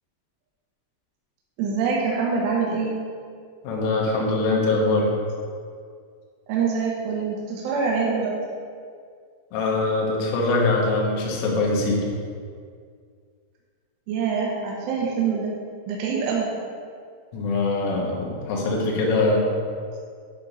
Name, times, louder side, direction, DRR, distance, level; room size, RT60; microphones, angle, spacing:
voice 1, 1.6-3.0 6.5-8.3 14.1-15.5 15.9-16.5, right 5 dB, 75° right, -3 dB, 2.6 m, -25 dB
voice 2, 3.6-5.1 9.5-12.0 17.3-19.5, left 2 dB, 80° left, -3 dB, 3.9 m, -22 dB
10.0 x 4.4 x 5.4 m, 2.1 s
omnidirectional pair, 5.9 m